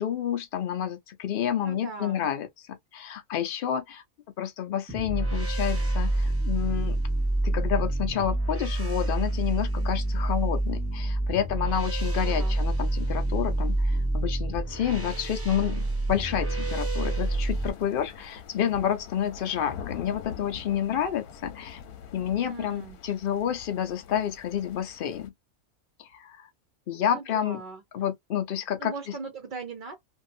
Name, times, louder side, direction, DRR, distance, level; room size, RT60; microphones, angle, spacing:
voice 1, 0.0-4.0 4.4-7.0 7.4-21.8 22.1-25.3 26.0-26.5 26.9-27.6 27.9-29.1, left 9 dB, 65° left, 0.5 m, -29 dB
voice 2, 1.6-2.3 12.2-12.6 22.5-23.0 27.0-27.8 28.8-30.0, right 4 dB, 55° right, 0.5 m, -39 dB
sound 1, 4.9-17.7, right 1 dB, 10° right, 0.7 m, -27 dB
sound 2, 17.0-25.3, left 7 dB, 85° left, 1.2 m, -44 dB
2.7 x 2.4 x 2.5 m
omnidirectional pair, 1.6 m